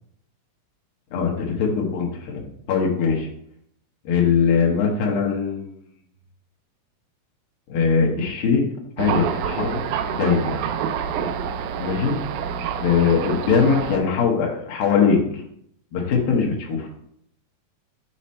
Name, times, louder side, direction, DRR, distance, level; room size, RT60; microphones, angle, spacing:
voice 1, 1.6-2.4 2.7-3.3 4.1-5.8 7.7-8.6 9.0-10.5 11.8-12.2 12.8-15.4 15.9-16.9, left 6 dB, 80° left, -1 dB, 3.0 m, -21 dB
Thunder, 9.0-14.0, right 7 dB, 85° right, 1.7 m, -27 dB
8.0 x 4.2 x 4.3 m, 0.70 s
omnidirectional pair, 4.0 m